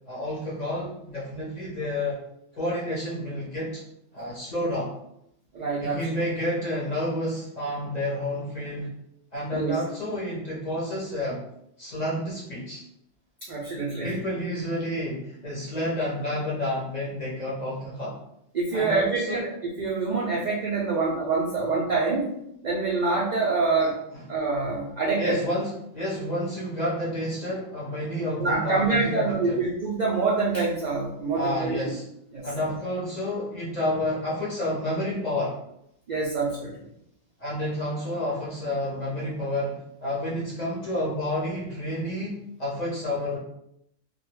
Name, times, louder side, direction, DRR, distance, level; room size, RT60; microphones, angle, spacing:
voice 1, 0.1-2.2 2.5-3.8 4.1-4.9 5.8-8.9 9.3-11.4 11.8-12.8 14.0-18.2 18.7-19.5 23.8-24.2 25.2-29.6 31.3-32.0 32.4-35.6 37.4-43.4, left 1 dB, 45° left, -6 dB, 0.6 m, -30 dB
voice 2, 5.5-6.1 9.5-9.8 13.4-14.1 18.5-19.5 19.8-22.3 22.6-24.0 24.3-25.4 28.4-31.9 32.3-32.5 36.1-36.7, right 3 dB, 85° right, -4 dB, 0.4 m, -26 dB
2.2 x 2.1 x 3.0 m, 0.78 s
omnidirectional pair, 1.3 m